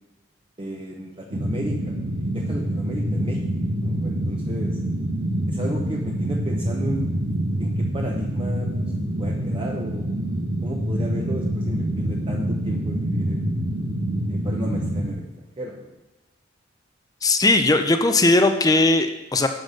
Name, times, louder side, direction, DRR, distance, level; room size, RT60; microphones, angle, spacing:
voice 1, 0.6-3.4 3.8-4.8 5.5-7.0 7.6-8.7 9.2-10.1 10.6-13.4 14.3-15.9, equal, 25° right, -1 dB, 0.8 m, -33 dB
sound 1, 1.3-15.1, right 1 dB, 70° right, 1.5 m, -26 dB
voice 2, 17.2-19.5, left 2 dB, 20° left, 7 dB, 0.5 m, -18 dB
10.0 x 4.0 x 6.5 m, 1.1 s
head